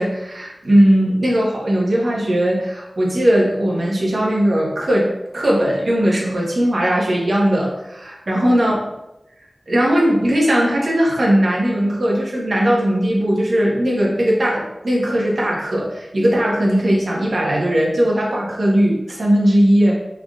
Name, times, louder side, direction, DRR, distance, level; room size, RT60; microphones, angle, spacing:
voice 1, 0.0-8.8 9.7-19.9, equal, 70° right, -4 dB, 1.0 m, -18 dB
3.8 x 3.5 x 2.4 m, 0.91 s
wide cardioid pair, 85°, 0 cm